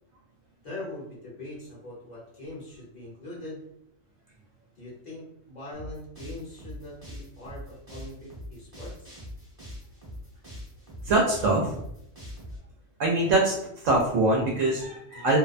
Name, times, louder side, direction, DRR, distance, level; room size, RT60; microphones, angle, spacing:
voice 1, 0.6-3.6 4.8-9.2 15.1-15.3, left 1 dB, 40° left, -6 dB, 0.9 m, -42 dB
sound 1, 5.7-12.6, equal, 20° right, 0.9 m, -42 dB
voice 2, 11.0-11.8 13.0-13.5 13.8-15.4, right 2 dB, 80° right, -2 dB, 0.9 m, -23 dB
2.5 x 2.1 x 2.4 m, 0.77 s
omnidirectional pair, 1.3 m